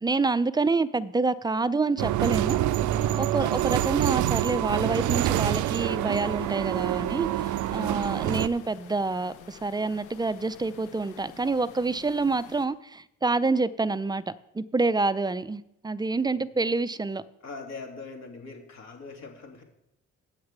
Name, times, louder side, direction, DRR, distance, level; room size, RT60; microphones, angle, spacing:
voice 1, 0.0-2.6 3.1-17.2, right 3 dB, 15° right, 16 dB, 0.4 m, -27 dB
sound 1, 2.0-8.5, right 13 dB, 80° right, 0.5 m, -26 dB
voice 2, 2.9-3.4 7.8-8.2 16.2-16.5 17.4-19.6, left 4 dB, 60° left, 2 dB, 2.6 m, -42 dB
sound 2, 4.8-12.7, left 8 dB, 80° left, 1.0 m, -49 dB
8.1 x 6.4 x 8.1 m, 0.82 s
cardioid pair, 90°, 30 cm